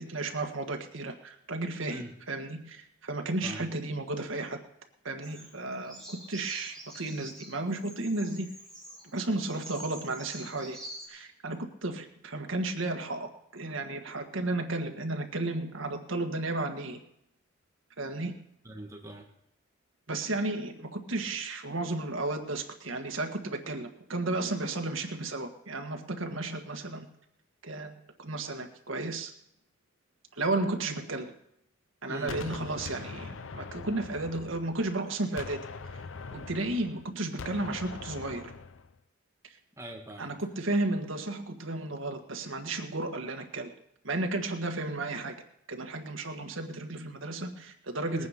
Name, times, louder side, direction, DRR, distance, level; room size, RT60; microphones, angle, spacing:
voice 1, 0.0-4.6 5.1-8.5 9.1-10.8 11.1-17.0 18.0-18.4 20.1-27.1 27.6-29.3 30.3-31.3 32.0-35.6 36.3-38.5 40.2-43.7 44.0-45.4 45.7-48.3, right 2 dB, 90° right, 4 dB, 1.7 m, -33 dB
Bird vocalization bird call bird song, 5.2-11.1, right 1 dB, 5° left, 6.1 m, -47 dB
voice 2, 18.6-19.2 32.1-32.4 39.8-40.3 48.1-48.3, right 1 dB, 15° right, 1 dB, 1.9 m, -41 dB
Gunshot gunfire, 32.3-35.0 35.4-38.9, left 4 dB, 85° left, 0.6 m, -42 dB
20.0 x 9.4 x 5.1 m, 0.76 s
head